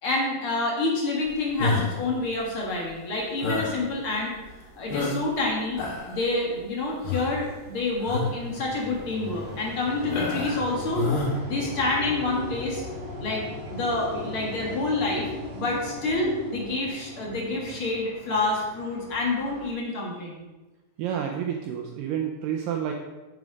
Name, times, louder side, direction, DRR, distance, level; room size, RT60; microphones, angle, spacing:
voice 1, 0.0-4.3 4.7-5.8 6.1-12.8 13.2-13.4 13.7-20.4, left 2 dB, 50° left, -2 dB, 1.6 m, -28 dB
sound 1, 1.6-2.1 3.4-3.8 4.4-4.5 4.9-5.4 5.7-6.2 7.0-7.4 8.0-8.4 8.9-9.0 10.1-10.6 10.9-11.3, left 3 dB, 75° left, 4.2 m, -28 dB
sound 2, 7.1-19.7, left 1 dB, 50° right, 2.7 m, -39 dB
voice 2, 21.0-22.9, right 9 dB, 80° right, 2 dB, 2.0 m, -29 dB
8.3 x 7.1 x 5.2 m, 1.1 s
omnidirectional pair, 4.7 m